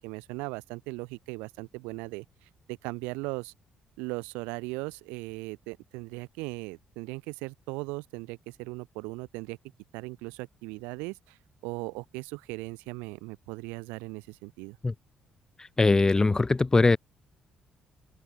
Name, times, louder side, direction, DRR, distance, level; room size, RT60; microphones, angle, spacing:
voice 1, 0.0-3.5 4.0-9.6 9.9-11.4 11.6-14.8, right 26 dB, 85° right, 1.2 m, -38 dB
voice 2, 15.8-17.0, left 3 dB, 25° left, 0.7 m, -21 dB
open air
supercardioid pair, 55°, 3 cm